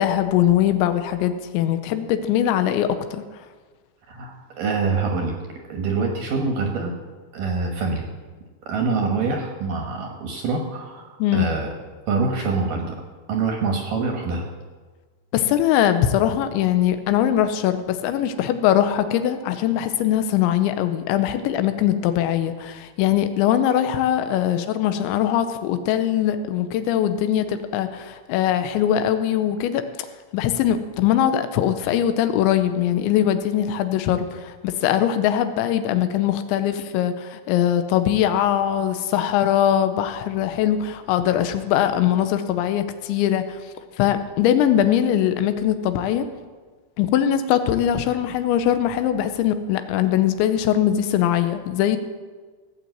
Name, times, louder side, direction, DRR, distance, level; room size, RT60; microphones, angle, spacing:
voice 1, 0.0-3.2 11.2-11.5 15.3-29.8 30.3-43.6 44.0-46.3 47.0-52.0, left 10 dB, 90° left, 9 dB, 3.0 m, -21 dB
voice 2, 4.1-5.4 5.7-6.9 7.3-8.1 8.6-11.7 12.1-13.0 13.3-14.5, right 4 dB, 70° right, 2 dB, 2.1 m, -25 dB
17.0 x 6.1 x 7.9 m, 1.4 s
omnidirectional pair, 5.3 m